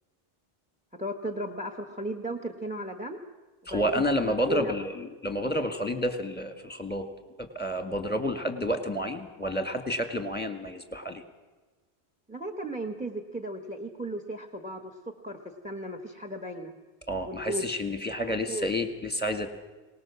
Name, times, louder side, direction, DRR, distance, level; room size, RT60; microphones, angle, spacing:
voice 1, 0.9-3.2 3.7-4.9 12.3-16.7 17.2-17.7 18.2-18.7, right 1 dB, 5° right, 6 dB, 1.3 m, -36 dB
voice 2, 3.7-7.1 7.4-11.2 17.1-19.5, equal, 10° left, 6 dB, 1.9 m, -30 dB
23.5 x 19.0 x 7.3 m, 1.2 s
omnidirectional pair, 1.0 m